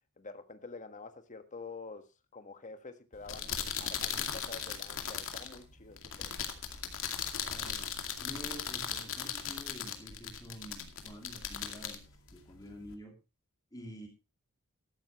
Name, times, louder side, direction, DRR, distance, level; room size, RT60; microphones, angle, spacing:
voice 1, 0.2-6.3, left 3 dB, 35° left, 1.5 m, -48 dB
sound 1, 3.1-12.9, left 8 dB, 65° left, 2.3 m, -38 dB
voice 2, 7.4-7.9 8.2-13.2 13.7-14.1, equal, 15° left, 3.0 m, -48 dB
14.5 x 13.0 x 3.1 m
head